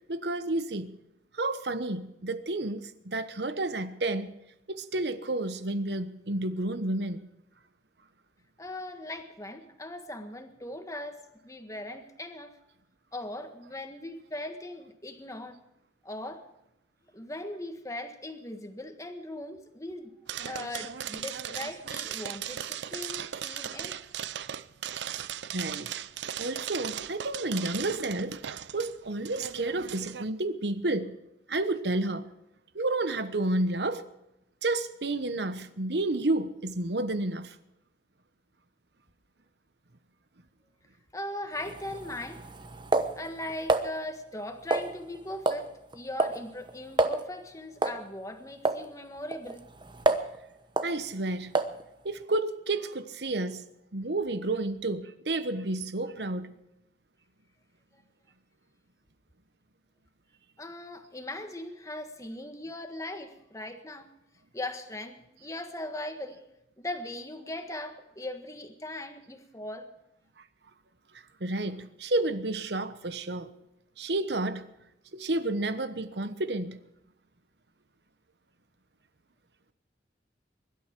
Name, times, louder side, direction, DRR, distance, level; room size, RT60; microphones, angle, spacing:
voice 1, 0.1-1.0 1.3-4.3 4.7-7.3 25.5-25.9 26.4-28.4 28.7-31.2 31.5-32.3 32.7-34.0 34.6-37.6 50.8-51.5 52.0-53.6 53.9-56.5 71.4-73.5 74.0-74.7 75.1-76.8, right 2 dB, 70° right, 1.1 m, -30 dB
voice 2, 8.6-12.5 13.1-15.6 16.0-16.4 17.1-20.1 20.4-24.0 41.1-42.4 43.1-49.6 60.6-64.1 64.5-66.5 66.8-69.9, left 1 dB, 20° left, 1.6 m, -39 dB
sound 1, 20.3-30.3, right 9 dB, 90° right, 0.6 m, -37 dB
sound 2, 41.6-43.9 44.7-45.2 45.5-45.7 45.9-46.4 46.7-46.8 47.0-47.2 47.8-48.0 48.7-48.8 49.3-50.4 50.8-50.9 51.6-51.8, right 2 dB, 25° right, 1.0 m, -28 dB
23.0 x 12.0 x 4.6 m
head